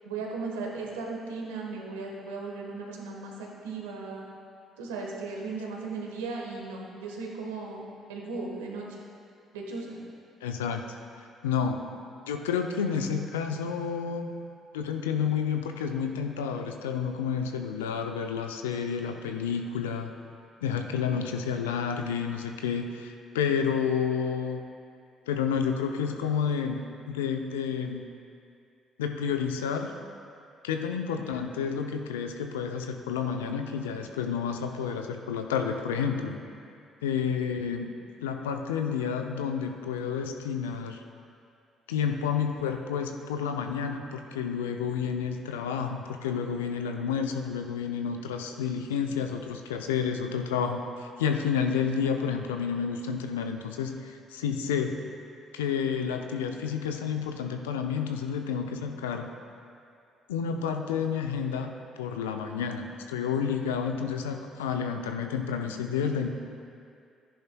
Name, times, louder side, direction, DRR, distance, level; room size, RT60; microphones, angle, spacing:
voice 1, 0.0-4.2 4.8-8.9 9.5-10.0, right 3 dB, 80° right, -1 dB, 1.4 m, -36 dB
voice 2, 10.4-11.0 11.4-11.8 12.3-14.3 14.7-20.1 20.6-24.6 25.3-26.8 27.1-28.0 29.0-29.9 30.6-36.4 37.0-37.9 38.2-41.0 41.9-55.0 55.5-59.3 60.3-61.7 62.0-66.3, left 7 dB, 85° left, 5 dB, 0.6 m, -30 dB
14.0 x 10.0 x 2.3 m, 2.4 s
hypercardioid pair, 50°, 0 cm